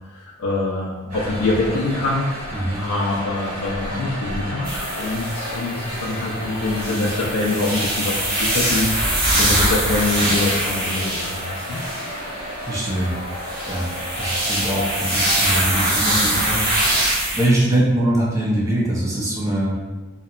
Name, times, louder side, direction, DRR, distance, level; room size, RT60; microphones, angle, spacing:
voice 1, 0.1-11.8, left 2 dB, 70° left, -5 dB, 0.4 m, -24 dB
sound 1, 1.1-17.1, equal, 85° right, 1.3 m, -32 dB
sound 2, 4.6-6.2 6.6-12.1 13.1-17.5, right 1 dB, 50° right, 0.9 m, -23 dB
voice 2, 12.6-13.1 13.7-13.9 14.2-16.6 17.0-19.7, right 1 dB, 15° right, -6 dB, 0.5 m, -22 dB
2.7 x 2.1 x 2.4 m, 1.2 s
head